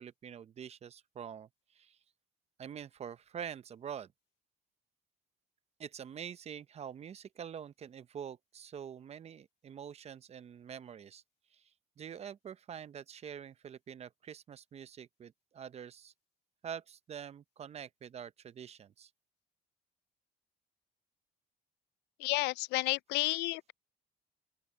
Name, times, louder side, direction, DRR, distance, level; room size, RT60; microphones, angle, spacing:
voice 1, 0.0-1.5 1.8-1.9 2.6-4.1 5.8-11.2 12.0-16.1 16.6-19.1, right 8 dB, 40° right, 0.8 m, -45 dB
voice 2, 22.2-23.7, left 21 dB, 90° left, 0.4 m, -31 dB
open air
cardioid pair, 110°, 17 cm